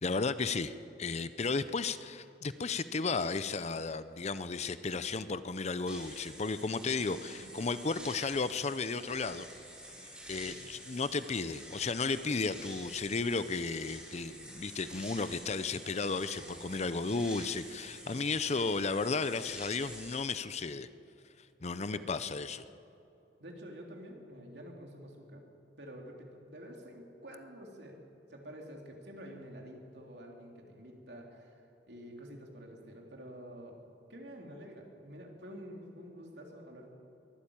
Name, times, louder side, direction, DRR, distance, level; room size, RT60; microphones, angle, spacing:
voice 1, 0.0-0.7 1.0-9.5 10.0-20.9 21.6-22.6, left 4 dB, 40° left, 13 dB, 0.6 m, -34 dB
sound 1, 5.9-20.2, right 1 dB, 5° right, 5.5 m, -49 dB
voice 2, 21.8-22.2 23.4-25.4 25.8-28.0 28.3-31.6 31.9-33.8 34.1-36.9, equal, 65° right, 1 dB, 3.4 m, -48 dB
22.5 x 13.0 x 8.9 m, 2.8 s
head